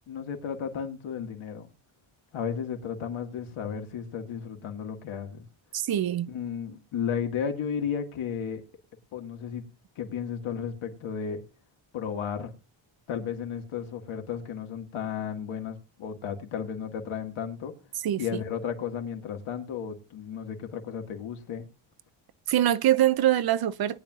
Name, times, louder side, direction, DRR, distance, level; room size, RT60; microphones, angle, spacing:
voice 1, 0.1-1.7 2.3-5.5 6.3-8.6 9.1-9.7 10.0-11.4 11.9-12.5 13.1-17.7 18.2-21.7, left 7 dB, 80° left, 2.0 m, -34 dB
voice 2, 5.7-6.3 18.0-18.2 22.5-24.0, right 12 dB, 50° right, 0.5 m, -24 dB
20.5 x 9.2 x 2.4 m
cardioid pair, 140°, 48 cm